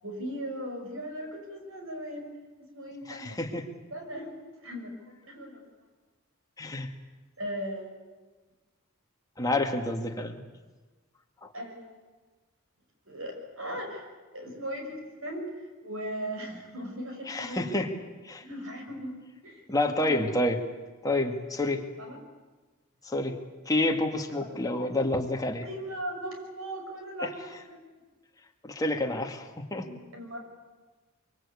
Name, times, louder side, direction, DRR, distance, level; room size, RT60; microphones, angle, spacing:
voice 1, 0.0-2.3 2.6-3.4 3.9-4.3 4.6-5.6 7.4-8.0 11.5-12.0 13.1-14.1 14.3-15.5 15.8-17.8 18.4-20.3 22.0-22.2 24.8-25.0 25.6-27.8 29.8-30.4, equal, 70° right, 3 dB, 6.2 m, -38 dB
voice 2, 3.1-3.6 6.6-6.9 9.4-10.3 17.3-17.9 18.2-18.4 19.7-20.6 21.0-21.8 23.0-23.4 23.7-25.6 27.2-27.3 28.6-29.9, left 1 dB, 15° left, 3 dB, 2.2 m, -28 dB
24.0 x 24.0 x 8.5 m, 1.3 s
head